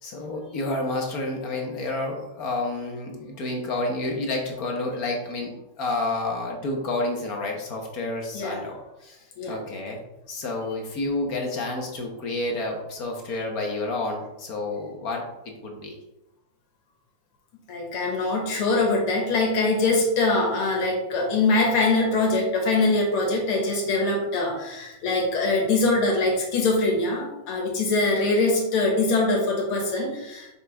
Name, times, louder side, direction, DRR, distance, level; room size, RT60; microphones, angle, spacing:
voice 1, 0.0-9.2 9.5-10.0 10.3-16.0, left 2 dB, 50° left, 1 dB, 1.3 m, -30 dB
voice 2, 17.7-30.5, left 2 dB, 90° left, 0 dB, 2.2 m, -23 dB
6.7 x 5.6 x 3.4 m, 0.94 s
omnidirectional pair, 2.3 m